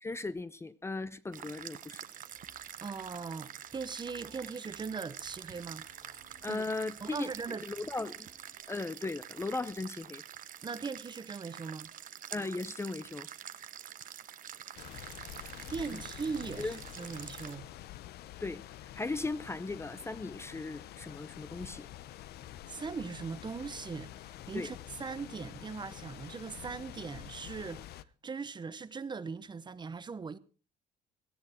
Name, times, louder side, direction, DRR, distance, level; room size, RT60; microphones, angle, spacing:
voice 1, 0.0-2.0 6.4-8.3 8.7-10.2 12.3-13.3 15.9-16.0 16.6-16.8 18.4-18.6 18.9-21.9 24.5-24.7, left 3 dB, 15° left, 0.7 m, -37 dB
sound 1, 1.3-17.6, right 10 dB, 50° right, 1.0 m, -47 dB
sound 2, 2.3-8.9, left 5 dB, 50° left, 2.9 m, -63 dB
voice 2, 2.8-5.9 6.5-6.6 7.0-7.6 10.6-11.9 15.7-17.7 22.7-27.9 28.2-30.4, right 5 dB, 25° right, 0.9 m, -40 dB
sound 3, 14.7-28.0, left 13 dB, 70° left, 0.8 m, -47 dB
18.0 x 13.5 x 4.4 m
cardioid pair, 110°, 17 cm